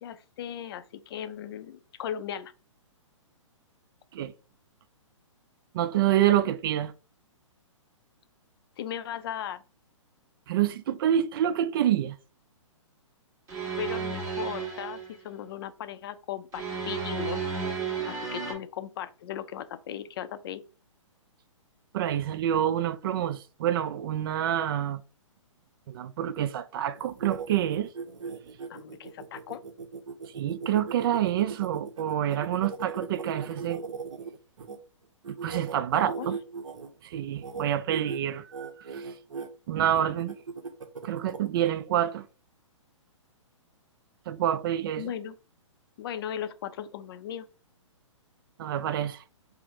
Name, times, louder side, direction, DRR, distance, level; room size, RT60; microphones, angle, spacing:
voice 1, 0.0-2.5 8.8-9.6 13.8-17.4 17.8-20.6 28.7-29.6 36.2-36.3 45.0-45.4 46.0-47.5, left 9 dB, 45° left, 0.4 m, -37 dB
voice 2, 5.7-6.9 10.5-12.2 21.9-25.0 25.9-27.9 30.4-33.8 35.4-36.4 37.0-39.0 39.7-40.4 41.0-42.2 44.3-45.1 48.6-49.2, right 11 dB, 45° right, 0.4 m, -27 dB
sound 1, 13.5-15.1 16.5-18.5, right 5 dB, 15° right, 1.2 m, -33 dB
sound 2, 26.9-34.8 35.2-36.9 37.3-37.6 37.9-38.2 38.5-39.5 39.9-41.7, right 5 dB, 70° right, 0.7 m, -38 dB
4.5 x 2.0 x 3.0 m
hypercardioid pair, 130°, 17 cm